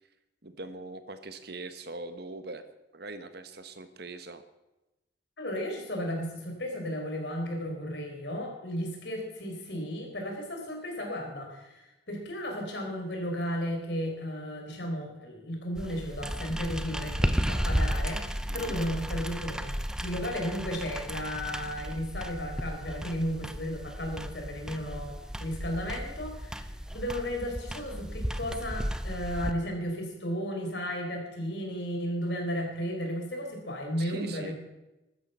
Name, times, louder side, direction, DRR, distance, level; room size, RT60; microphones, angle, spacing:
voice 1, 0.4-2.6 2.9-4.4 18.5-18.8 34.0-34.5, right 2 dB, 55° right, 10 dB, 1.3 m, -41 dB
voice 2, 5.4-34.5, equal, 60° left, 2 dB, 4.4 m, -34 dB
sound 1, 15.7-29.5, equal, 5° right, 0.6 m, -34 dB
15.0 x 13.0 x 5.7 m, 0.98 s
head